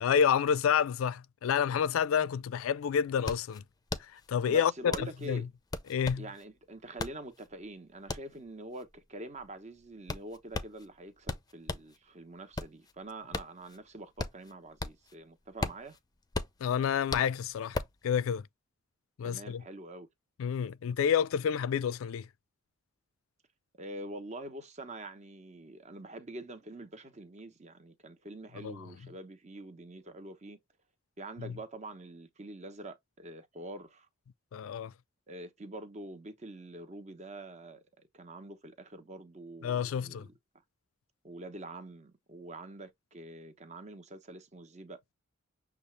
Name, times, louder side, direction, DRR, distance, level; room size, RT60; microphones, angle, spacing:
voice 1, 0.0-3.6 4.0-5.4 5.9-6.2 16.6-18.5 19.2-19.6 20.4-22.3 28.6-28.8 31.4-31.5 34.5-34.9 39.6-40.3, left 7 dB, 80° left, 0.3 m, -29 dB
sound 1, 2.3-2.4 2.7-12.0 12.3-15.2 15.4-18.0, left 3 dB, 20° left, 0.5 m, -38 dB
voice 2, 4.5-5.5 6.2-16.0 19.2-20.1 23.8-30.6 31.2-34.1 35.3-40.3 41.2-45.0, right 2 dB, 35° right, 0.9 m, -45 dB
6.8 x 2.4 x 3.1 m
head